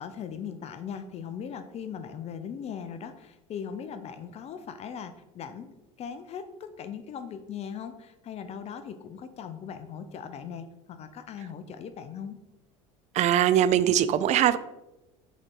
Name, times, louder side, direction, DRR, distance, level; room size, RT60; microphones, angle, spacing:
voice 1, 0.0-5.7 6.0-12.4, left 7 dB, 40° left, 10 dB, 0.6 m, -39 dB
voice 2, 13.2-14.6, right 11 dB, 45° right, 15 dB, 0.5 m, -21 dB
6.5 x 4.3 x 4.9 m, 0.97 s
supercardioid pair, 100°, 16 cm